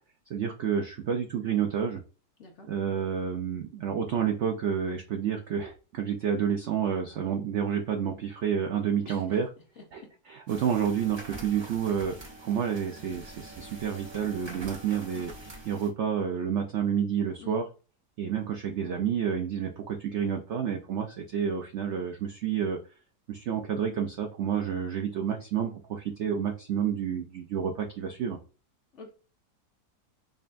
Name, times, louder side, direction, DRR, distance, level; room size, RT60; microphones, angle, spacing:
voice 1, 0.3-2.0 2.7-9.5 9.9-15.3 15.6-17.7 18.2-22.8 23.3-28.4, right 8 dB, 80° right, 4 dB, 0.6 m, -29 dB
voice 2, 2.4-2.7 9.1-9.2 9.8-9.9 17.4-17.6 28.9-29.1, left 3 dB, 60° left, 2 dB, 0.8 m, -46 dB
sound 1, 10.5-15.9, right 2 dB, 40° right, 0.4 m, -44 dB
5.1 x 2.3 x 2.5 m, 0.35 s
omnidirectional pair, 1.8 m